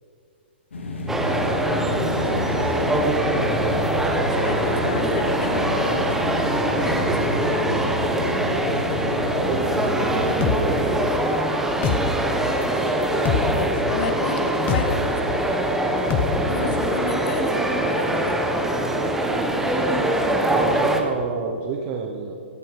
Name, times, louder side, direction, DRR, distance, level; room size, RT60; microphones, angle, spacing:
sound 1, 0.7-10.5, left 1 dB, 85° left, 3.1 m, -30 dB
sound 2, 1.1-21.0, right 1 dB, 5° right, 1.4 m, -23 dB
voice 1, 2.2-3.4 4.4-6.0 6.6-7.0 7.3-8.0 13.5-15.1 16.4-17.5 17.8-18.4, left 4 dB, 55° left, 6 dB, 2.0 m, -32 dB
voice 2, 9.4-11.0 20.5-22.3, right 5 dB, 35° right, 2 dB, 1.2 m, -29 dB
sound 3, 10.4-10.6 11.8-12.0 13.2-13.4 14.7-14.9 16.1-16.3, left 8 dB, 30° left, 1.3 m, -22 dB
17.0 x 11.0 x 5.3 m, 2.4 s
hypercardioid pair, 125°, 6 cm